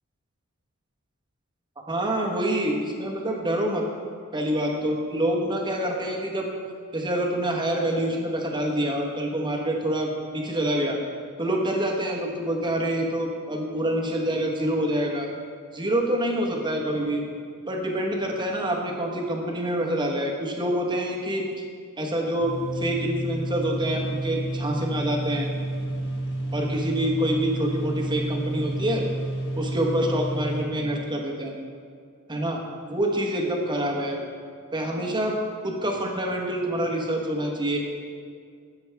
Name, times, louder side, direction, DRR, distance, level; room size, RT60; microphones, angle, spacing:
voice 1, 1.9-3.8 4.3-6.5 6.9-11.0 11.4-15.3 15.7-17.2 17.7-21.5 22.0-25.5 26.5-29.0 29.5-31.5 32.3-32.6 32.9-34.2 34.7-35.4 35.6-37.8, right 1 dB, 20° right, 0 dB, 1.2 m, -26 dB
sound 1, 22.4-30.6, right 1 dB, 55° left, 1.4 m, -30 dB
15.0 x 7.1 x 3.5 m, 2.2 s
head